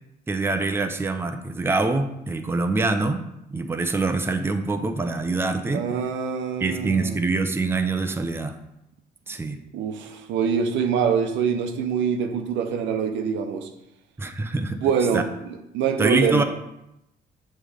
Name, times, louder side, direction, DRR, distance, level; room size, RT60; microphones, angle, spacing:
voice 1, 0.3-5.8 6.6-8.6 9.3-9.6 14.2-14.8 15.1-15.2 16.0-16.4, right 3 dB, 10° right, 7 dB, 0.5 m, -25 dB
voice 2, 5.7-7.2 9.7-13.7 14.8-15.2 15.7-16.4, right 7 dB, 85° right, 6 dB, 0.7 m, -24 dB
7.3 x 3.3 x 4.9 m, 0.86 s
cardioid pair, 95°, 19 cm